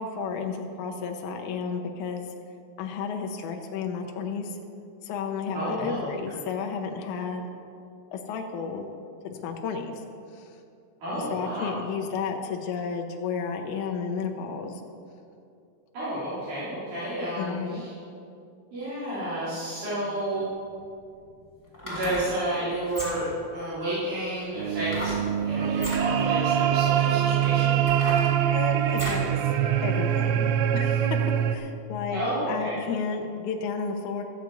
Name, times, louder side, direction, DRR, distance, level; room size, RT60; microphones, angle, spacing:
voice 1, 0.0-2.3 2.8-4.6 5.0-7.5 8.1-8.9 9.2-10.0 10.3-10.6 11.3-14.8 17.4-17.8 28.5-29.5 29.8-32.2 32.5-34.2, left 5 dB, 75° left, 3 dB, 2.1 m, -32 dB
voice 2, 5.5-6.1 11.0-11.8 15.9-17.9 18.7-20.5 21.8-23.3 23.5-27.8 32.1-32.8, right 1 dB, 65° right, -12 dB, 4.8 m, -31 dB
sound 1, 21.7-22.3 22.8-23.4 24.9-25.2 25.7-26.0 26.8-26.9 27.4-29.3 29.7-29.8, equal, 5° left, 3.0 m, -35 dB
sound 2, 24.6-31.6, right 9 dB, 85° right, 1.5 m, -24 dB
13.5 x 6.5 x 8.2 m, 2.5 s
omnidirectional pair, 3.8 m